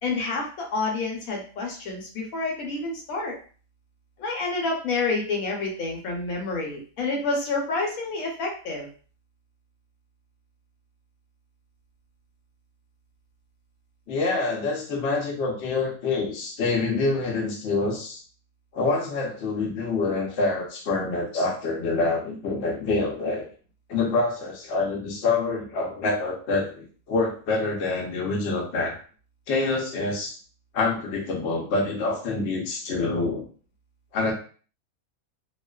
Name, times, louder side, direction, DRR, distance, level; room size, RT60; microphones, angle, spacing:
voice 1, 0.0-3.4 4.2-8.9, left 3 dB, 80° left, 0 dB, 1.1 m, -28 dB
voice 2, 14.1-18.2 18.7-23.5 23.9-28.9 29.5-30.3 30.7-33.5 34.1-34.3, left 3 dB, 60° left, -1 dB, 0.8 m, -26 dB
2.4 x 2.3 x 2.2 m, 0.41 s
omnidirectional pair, 1.5 m